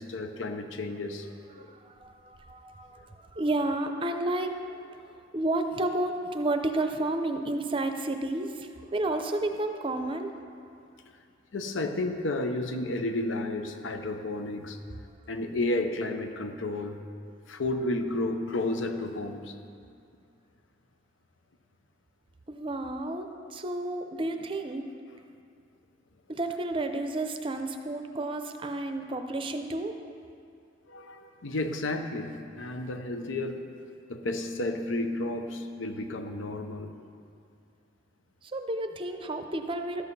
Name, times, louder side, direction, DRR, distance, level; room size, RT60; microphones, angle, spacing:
voice 1, 0.0-1.7 11.5-14.8 15.3-17.1 17.5-19.5 30.9-33.7 34.1-36.9, left 2 dB, 85° left, 7 dB, 0.8 m, -32 dB
voice 2, 1.7-4.7 5.3-10.3 22.5-24.8 26.3-30.0 38.4-40.0, right 2 dB, 30° right, 6 dB, 0.5 m, -31 dB
12.0 x 7.7 x 4.1 m, 2.4 s
head